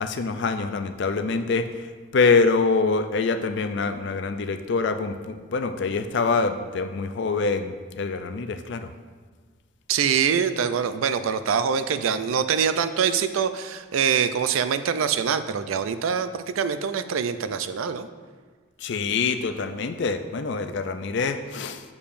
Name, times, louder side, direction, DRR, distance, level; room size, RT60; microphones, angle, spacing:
voice 1, 0.0-1.7 2.1-8.9 18.8-21.8, left 4 dB, 60° left, 8 dB, 0.4 m, -25 dB
voice 2, 9.9-18.1, right 7 dB, 90° right, 11 dB, 0.4 m, -24 dB
7.0 x 6.7 x 2.6 m, 1.5 s
head